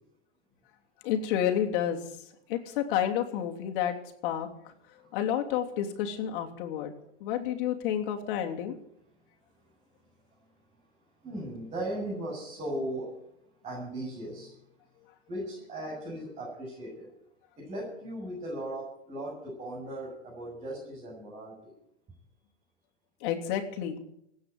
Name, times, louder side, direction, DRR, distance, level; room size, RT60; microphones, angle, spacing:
voice 1, 1.0-2.0 2.5-4.0 4.2-4.5 5.1-6.9 7.2-8.7 23.2-24.0, left 10 dB, 45° left, 3 dB, 3.1 m, -30 dB
voice 2, 11.2-13.1 13.6-14.5 15.3-17.1 17.6-21.7, right 1 dB, 20° right, -5 dB, 7.4 m, -37 dB
16.5 x 9.3 x 9.3 m, 0.77 s
hypercardioid pair, 145°, 35 cm